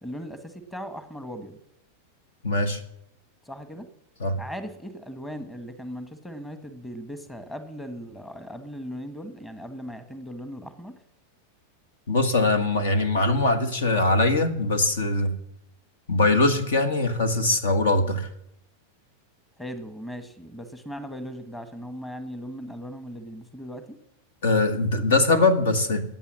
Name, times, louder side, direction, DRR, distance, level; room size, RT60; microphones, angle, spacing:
voice 1, 0.0-1.6 3.4-3.9 4.4-11.0 19.6-24.0, equal, 10° left, 9 dB, 1.5 m, -38 dB
voice 2, 2.4-2.8 4.2-4.4 12.1-15.3 16.1-18.3 24.4-26.0, left 2 dB, 60° left, 9 dB, 1.6 m, -22 dB
14.5 x 9.0 x 7.5 m, 0.79 s
figure-of-eight pair, 90°, 0 cm